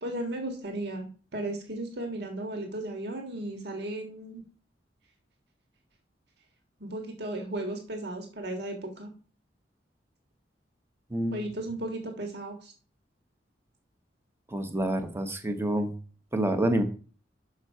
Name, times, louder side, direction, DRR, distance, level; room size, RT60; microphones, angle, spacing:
voice 1, 0.0-4.4 6.8-9.1 11.3-12.7, right 1 dB, 65° right, 3 dB, 1.6 m, -35 dB
voice 2, 11.1-11.5 14.5-15.9 16.3-16.8, right 1 dB, 15° right, 7 dB, 0.9 m, -27 dB
6.1 x 5.3 x 5.4 m, 0.39 s
head